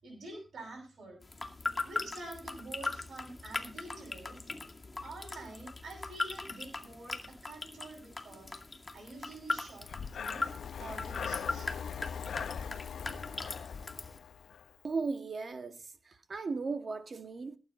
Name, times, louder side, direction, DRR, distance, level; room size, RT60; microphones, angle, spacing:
voice 1, 0.0-1.2 1.8-4.4 5.0-8.6 8.9-10.5 10.8-11.7, right 2 dB, 75° right, 6.9 m, -47 dB
sound 1, 1.2-14.2, left 3 dB, 30° left, 2.3 m, -40 dB
Breathing, 9.8-14.7, left 7 dB, 85° left, 0.7 m, -40 dB
voice 2, 14.8-17.6, right 4 dB, 55° right, 1.9 m, -37 dB
18.0 x 8.9 x 4.4 m
cardioid pair, 80°, 0 cm